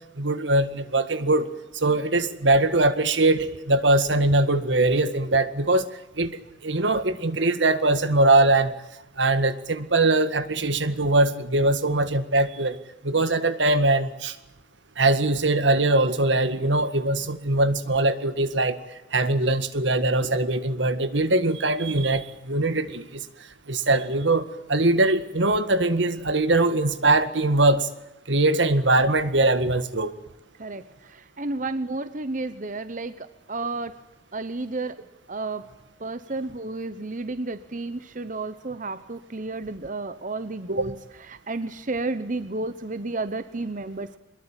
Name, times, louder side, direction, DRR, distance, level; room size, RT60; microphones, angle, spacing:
voice 1, 0.2-1.5 1.7-5.9 6.2-8.8 9.2-12.8 13.0-14.4 15.0-18.8 19.1-23.3 23.7-27.9 28.3-30.1, right 2 dB, 80° right, 11 dB, 1.9 m, -22 dB
voice 2, 30.6-34.0 34.3-35.0 35.3-35.7 36.0-44.2, right 2 dB, 45° right, 12 dB, 1.0 m, -32 dB
24.5 x 21.5 x 9.1 m, 0.90 s
head